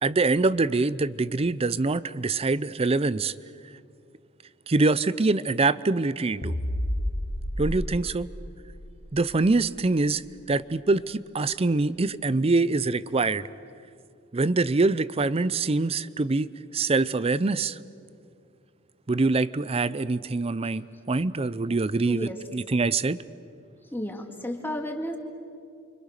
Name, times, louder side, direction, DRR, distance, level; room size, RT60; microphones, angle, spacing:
voice 1, 0.0-3.3 4.7-6.5 7.6-8.3 9.1-10.2 10.5-13.4 14.3-16.5 16.7-17.8 19.1-23.2, right 3 dB, 30° right, 17 dB, 0.5 m, -24 dB
sound 1, 6.4-10.9, equal, 50° left, 1.5 m, -33 dB
voice 2, 22.0-22.4 23.9-25.2, equal, 10° left, 3 dB, 2.2 m, -32 dB
29.5 x 25.0 x 6.7 m, 2.4 s
head